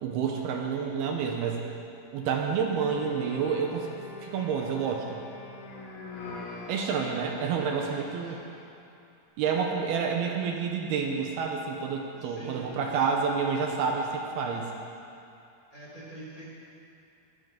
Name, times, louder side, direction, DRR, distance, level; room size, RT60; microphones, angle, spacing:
voice 1, 0.0-1.7 2.1-3.9 4.2-5.2 6.7-8.4 9.4-14.7, right 6 dB, 75° right, 1 dB, 2.8 m, -29 dB
sound 1, 2.8-8.8, left 3 dB, 65° left, 4.0 m, -44 dB
voice 2, 7.7-8.5 12.2-13.3 15.7-16.5, right 1 dB, 25° left, -7 dB, 2.7 m, -47 dB
19.5 x 13.5 x 3.9 m, 2.6 s
omnidirectional pair, 4.8 m